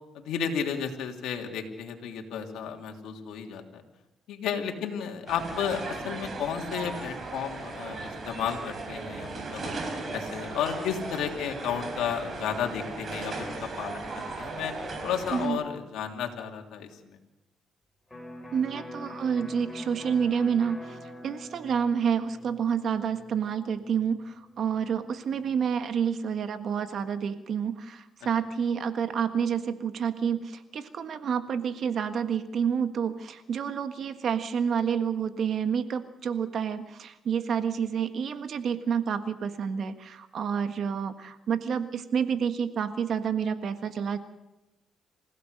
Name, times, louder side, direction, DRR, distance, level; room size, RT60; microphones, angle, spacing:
voice 1, 0.1-3.8 4.3-9.7 10.1-14.7 15.0-17.2, left 8 dB, 85° left, 3 dB, 2.9 m, -33 dB
sound 1, 5.3-15.5, right 3 dB, 45° right, 4.8 m, -37 dB
Electric guitar, 18.1-25.8, equal, 10° left, 6.2 m, -45 dB
voice 2, 18.5-44.2, right 7 dB, 60° right, 9 dB, 1.6 m, -29 dB
28.0 x 16.0 x 6.6 m, 0.98 s
cardioid pair, 90°, 0 cm